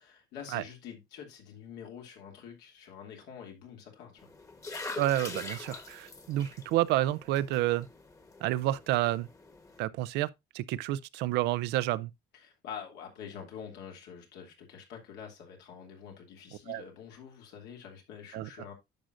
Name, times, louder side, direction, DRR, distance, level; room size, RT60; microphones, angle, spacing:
voice 1, 0.0-4.3 12.3-18.7, left 8 dB, 90° left, 2.6 m, -46 dB
sound 1, 4.2-9.8, left 3 dB, 20° left, 1.2 m, -44 dB
voice 2, 5.0-7.9 8.4-9.3 9.8-10.3 10.5-12.1 16.7-16.8 18.3-18.5, right 15 dB, 85° right, 0.5 m, -29 dB
10.5 x 6.4 x 2.5 m
cardioid pair, 110°, 17 cm